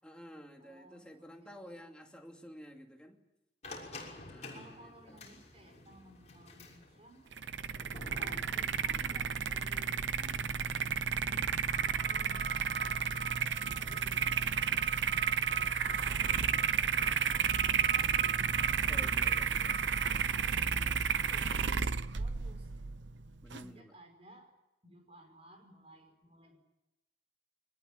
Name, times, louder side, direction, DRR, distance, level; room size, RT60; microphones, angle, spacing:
voice 1, 0.0-3.2 4.3-5.2 7.7-8.2 18.7-19.8 23.4-23.9, equal, 5° left, 2 dB, 2.6 m, -52 dB
voice 2, 0.6-1.8 4.5-7.3 8.1-10.4 11.3-14.8 15.4-16.4 16.8-19.0 19.8-22.7 23.5-24.5 24.8-26.6, right 1 dB, 35° right, 5 dB, 5.5 m, -58 dB
sound 1, 3.6-11.7, left 2 dB, 40° left, 6.4 m, -52 dB
sound 2, 7.3-23.7, right 7 dB, 90° right, 0.9 m, -32 dB
sound 3, 11.7-20.2, right 4 dB, 60° right, 3.4 m, -45 dB
24.5 x 20.5 x 9.3 m, 0.96 s
head